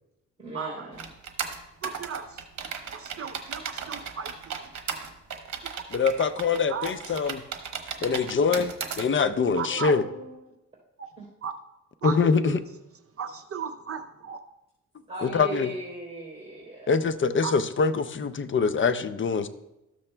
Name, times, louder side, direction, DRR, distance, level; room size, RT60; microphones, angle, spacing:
voice 1, 0.4-1.1 9.3-10.4 11.2-11.3 15.1-17.0, right 2 dB, 20° right, -5 dB, 3.2 m, -38 dB
sound 1, 1.0-9.1, right 6 dB, 65° right, 1.0 m, -36 dB
voice 2, 1.8-2.2 2.9-4.3 6.7-6.9 9.6-9.9 11.4-11.5 12.0-12.6 13.2-14.4 17.4-17.5, right 6 dB, 50° right, 7 dB, 0.6 m, -34 dB
voice 3, 5.9-7.4 8.0-10.0 12.0-12.6 15.2-15.7 16.9-19.5, left 5 dB, 40° left, 11 dB, 0.5 m, -24 dB
13.0 x 6.9 x 2.2 m, 0.92 s
cardioid pair, 85°, 30 cm